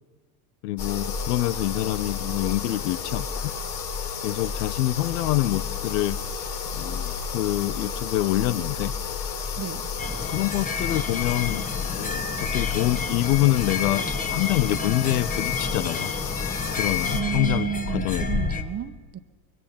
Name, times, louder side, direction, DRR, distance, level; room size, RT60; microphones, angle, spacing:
voice 1, 0.6-3.3 4.2-6.2 6.7-8.9 10.3-11.6 11.9-16.1 16.8-18.5, left 16 dB, 75° left, 19 dB, 0.9 m, -26 dB
sound 1, 0.8-17.2, left 6 dB, 55° left, 5.7 m, -31 dB
voice 2, 9.6-9.9 17.1-19.2, right 8 dB, 30° right, 10 dB, 1.4 m, -31 dB
sound 2, 10.0-18.6, left 4 dB, 15° left, 1.8 m, -30 dB
24.0 x 22.5 x 8.8 m, 1.5 s
supercardioid pair, 105°, 47 cm